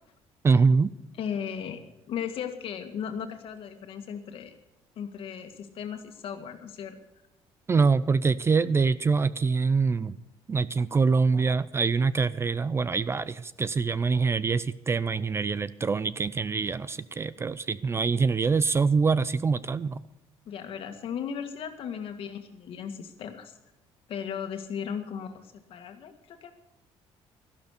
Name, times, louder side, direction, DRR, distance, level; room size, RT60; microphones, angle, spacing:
voice 1, 0.4-0.9 7.7-10.2 10.5-20.0, right 4 dB, 25° right, 17 dB, 0.4 m, -24 dB
voice 2, 1.2-4.6 5.0-7.0 20.5-23.6 24.1-26.5, left 7 dB, 60° left, 6 dB, 1.8 m, -36 dB
13.0 x 12.0 x 6.6 m, 0.88 s
cardioid pair, 120°, 11 cm